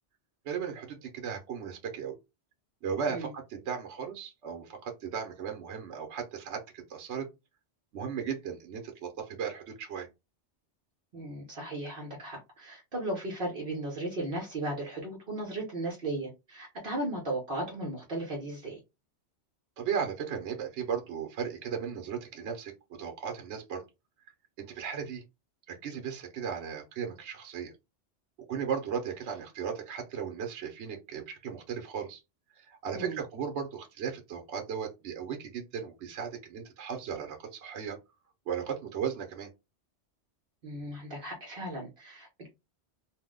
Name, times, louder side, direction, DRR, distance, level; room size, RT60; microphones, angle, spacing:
voice 1, 0.4-2.2 2.8-7.3 7.9-10.1 19.8-23.8 24.6-25.2 25.7-27.7 28.5-32.2 32.6-38.0 38.5-39.5, right 7 dB, 75° right, 1.0 m, -36 dB
voice 2, 11.1-18.8 32.9-33.2 40.6-42.5, right 1 dB, 55° right, 0.9 m, -36 dB
2.6 x 2.0 x 3.5 m
omnidirectional pair, 1.2 m